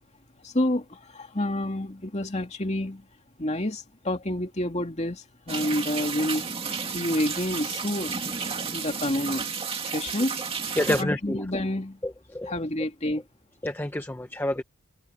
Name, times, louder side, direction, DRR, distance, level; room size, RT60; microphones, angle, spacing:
voice 1, 0.4-3.1 3.4-6.4 6.9-9.5 9.8-10.4 10.9-12.0 12.4-13.2, left 1 dB, 30° left, 2.5 m, -29 dB
sound 1, 5.5-11.0, right 5 dB, 25° right, 2.5 m, -32 dB
voice 2, 10.8-11.4 12.3-12.5 13.6-14.6, left 1 dB, 10° left, 0.6 m, -27 dB
head